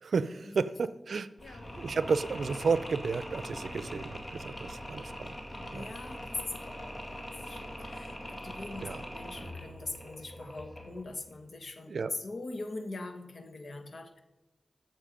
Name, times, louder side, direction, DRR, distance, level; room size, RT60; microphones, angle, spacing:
voice 1, 0.0-5.4 5.7-5.9 8.8-9.0 11.9-12.1, right 5 dB, 75° right, 14 dB, 0.5 m, -32 dB
Mechanisms, 1.4-11.1, equal, 30° left, 2.1 m, -42 dB
voice 2, 5.7-14.2, left 2 dB, 65° left, 7 dB, 1.3 m, -42 dB
12.5 x 7.3 x 5.1 m, 1.0 s
cardioid pair, 60°, 0 cm